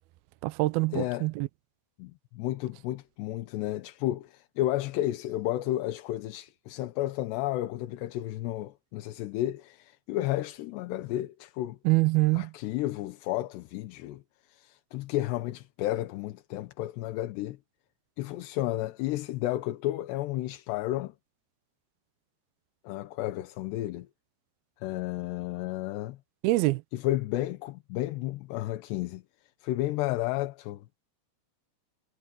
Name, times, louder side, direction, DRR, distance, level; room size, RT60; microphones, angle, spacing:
voice 1, 0.4-1.5 11.9-12.5 26.4-26.8, right 21 dB, 90° right, 2.2 m, -25 dB
voice 2, 0.9-1.3 2.0-11.8 12.3-14.2 14.5-17.6 18.2-21.1 22.8-24.1 24.8-26.2 26.9-29.2 29.6-31.0, left 15 dB, 75° left, 3.0 m, -32 dB
omnidirectional pair, 5.1 m